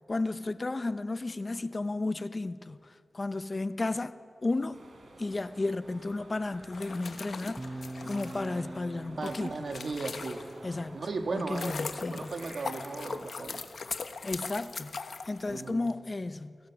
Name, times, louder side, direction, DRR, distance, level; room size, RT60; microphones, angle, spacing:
voice 1, 0.1-4.2 4.4-4.9 5.2-9.6 10.6-11.0 11.3-12.3 14.2-16.6, left 2 dB, 35° left, 0.7 m, -33 dB
sound 1, 4.7-13.3, right 2 dB, 90° right, 3.7 m, -52 dB
sound 2, 6.6-10.7 11.2-15.9, left 4 dB, 85° left, 1.2 m, -40 dB
sound 3, 7.6-11.6, right 1 dB, 15° right, 1.0 m, -44 dB
voice 2, 9.2-10.5 10.9-13.6 15.5-15.9, right 3 dB, 70° right, 1.9 m, -36 dB
29.5 x 25.0 x 6.2 m
wide cardioid pair, 95°, 0 cm